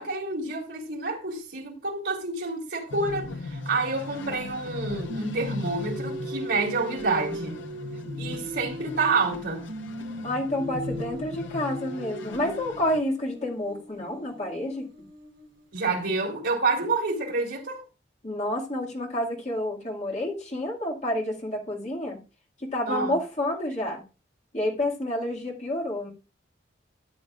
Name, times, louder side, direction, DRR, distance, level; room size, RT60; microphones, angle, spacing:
voice 1, 0.0-7.6 8.2-9.7 15.7-17.8 22.9-23.1, right 3 dB, 65° right, 2.9 m, -28 dB
sound 1, 2.9-13.0, left 3 dB, 80° left, 0.8 m, -38 dB
Singing, 5.1-9.4 9.7-15.7, right 1 dB, 85° right, 3.1 m, -39 dB
voice 2, 10.2-14.9 18.2-22.2 22.6-24.0 24.5-26.1, left 1 dB, 35° left, 2.1 m, -29 dB
13.5 x 9.0 x 2.4 m
head